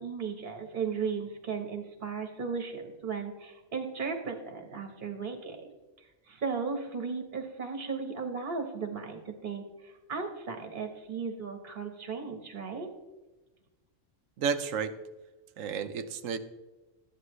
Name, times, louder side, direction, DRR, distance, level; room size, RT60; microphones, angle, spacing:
voice 1, 0.0-5.7 6.3-12.9, right 5 dB, 40° right, 5 dB, 1.4 m, -36 dB
voice 2, 14.4-14.9 15.6-16.4, right 6 dB, 85° right, 10 dB, 1.2 m, -31 dB
13.5 x 10.0 x 3.2 m, 1.1 s
omnidirectional pair, 1.3 m